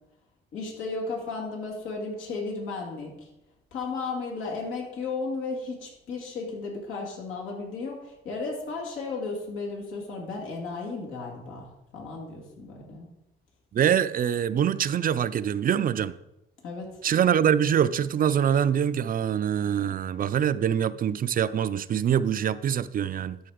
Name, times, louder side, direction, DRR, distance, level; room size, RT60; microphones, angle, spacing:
voice 1, 0.5-3.1 3.7-13.1 16.6-16.9, left 3 dB, 85° left, 2.5 m, -34 dB
voice 2, 13.7-16.1 17.0-23.4, right 9 dB, 45° right, 0.4 m, -24 dB
12.5 x 4.3 x 5.0 m
cardioid pair, 90°, 20 cm